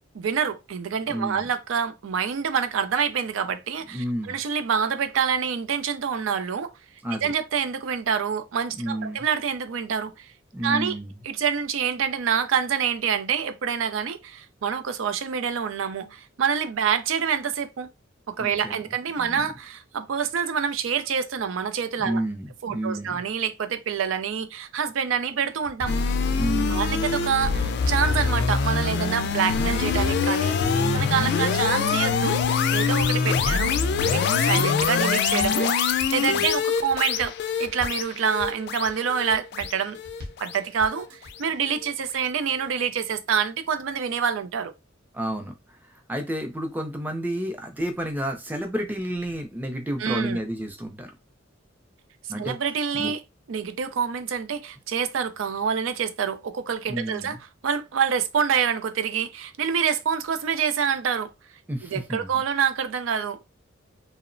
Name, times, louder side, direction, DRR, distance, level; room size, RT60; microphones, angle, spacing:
voice 1, 0.1-6.7 7.1-10.3 10.6-11.0 11.2-17.9 18.3-22.2 22.6-25.9 26.7-30.6 30.9-32.4 32.7-33.8 34.0-37.3 37.6-40.0 40.4-44.7 50.0-50.4 52.4-53.2 53.5-57.4 57.6-61.3 61.8-63.4, right 7 dB, 85° right, 0.4 m, -26 dB
voice 2, 1.1-1.5 3.9-4.3 7.0-7.3 8.8-9.3 10.5-11.1 18.4-18.7 19.2-19.5 22.0-23.2 26.3-27.1 30.7-31.1 36.3-36.5 45.1-45.6 45.9-51.1 52.3-52.6 52.9-53.1 56.9-57.4 61.7-62.3, right 1 dB, 10° right, 0.4 m, -31 dB
sound 1, 25.7-26.1 26.4-26.9 27.3-28.5 28.8-29.3 29.7-30.2 30.4-30.9 31.2-31.7 32.1-33.3 33.6-34.1 34.5-35.7 36.0-36.5 36.9-38.1 38.4-38.9 39.3-39.8 40.0-40.5 40.8-41.3, left 2 dB, 55° right, 0.8 m, -41 dB
sound 2, 25.9-41.0, left 5 dB, 55° left, 0.3 m, -24 dB
2.8 x 2.0 x 2.5 m
head